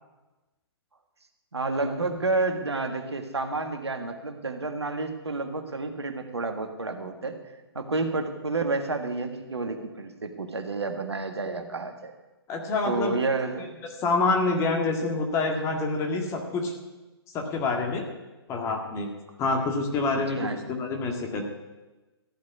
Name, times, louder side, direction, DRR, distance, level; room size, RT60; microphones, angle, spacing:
voice 1, 1.5-7.4 7.8-12.1 12.9-13.8 20.2-20.6, right 3 dB, 85° right, 6 dB, 1.7 m, -30 dB
voice 2, 12.5-13.2 14.0-16.7 17.3-18.1 18.5-19.1 19.4-20.4 20.7-21.5, left 3 dB, 20° left, 3 dB, 2.0 m, -26 dB
14.5 x 5.3 x 9.5 m, 1.1 s
figure-of-eight pair, 135°, 14 cm